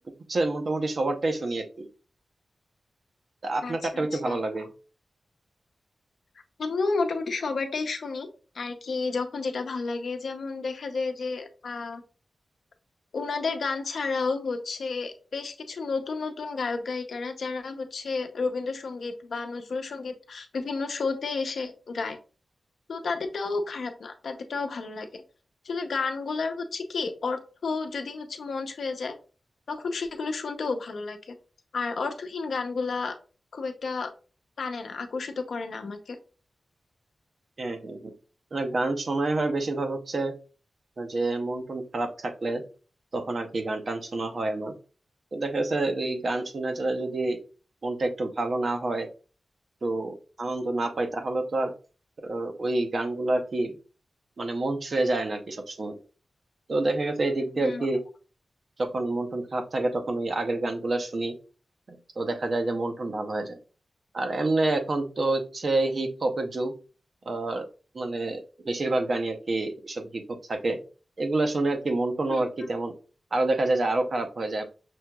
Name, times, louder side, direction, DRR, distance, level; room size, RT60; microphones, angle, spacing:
voice 1, 0.3-1.9 3.4-4.7 37.6-38.1 38.5-40.3 41.0-42.6 43.1-44.7 45.3-47.4 47.8-49.1 49.8-51.7 52.2-53.8 54.4-56.0 56.7-58.0 58.8-61.3 61.9-63.6 64.1-66.7 67.3-67.7 67.9-70.2 70.5-70.8 71.2-72.9 73.3-74.6, right 2 dB, 50° right, 5 dB, 0.7 m, -28 dB
voice 2, 3.6-4.4 6.6-8.3 8.5-12.0 13.1-22.2 22.9-25.2 25.6-29.1 29.7-31.3 31.7-33.1 33.5-34.1 34.6-36.2 57.5-57.9 72.3-72.4, left 4 dB, 80° left, 5 dB, 0.7 m, -31 dB
6.0 x 2.9 x 2.3 m, 0.36 s
wide cardioid pair, 145°, 0 cm